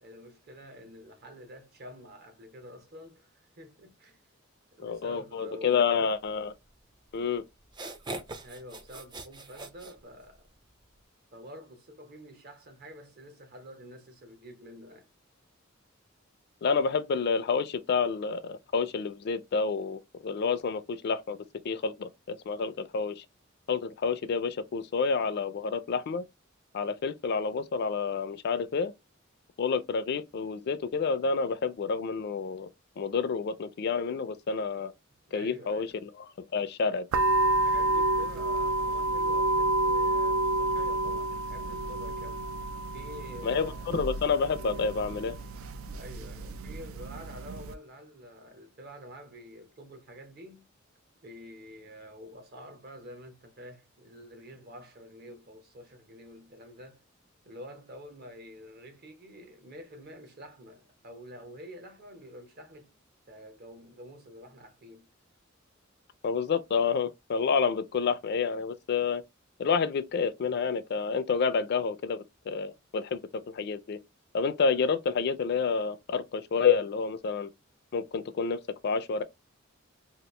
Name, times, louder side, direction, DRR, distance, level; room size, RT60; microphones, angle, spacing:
voice 1, 0.0-4.2 4.8-5.9 8.4-10.5 11.3-15.1 35.3-36.0 37.4-42.4 42.9-44.0 45.9-50.7 51.2-57.0 57.4-62.9 63.3-65.1, equal, 50° right, 0.8 m, -48 dB
voice 2, 4.8-6.5 7.1-7.4 16.6-21.4 21.6-23.2 23.7-26.2 26.7-28.9 29.6-32.7 33.0-34.9 35.3-36.1 36.4-37.1 43.4-45.3 66.2-69.2 69.6-73.2 73.5-74.0 74.3-77.5 77.9-79.2, left 5 dB, 55° left, 0.4 m, -29 dB
sound 1, 7.1-7.2 7.6-10.5, right 2 dB, 20° right, 0.4 m, -41 dB
sound 2, 37.1-47.7, right 2 dB, 85° right, 0.4 m, -29 dB
2.9 x 2.4 x 3.1 m
head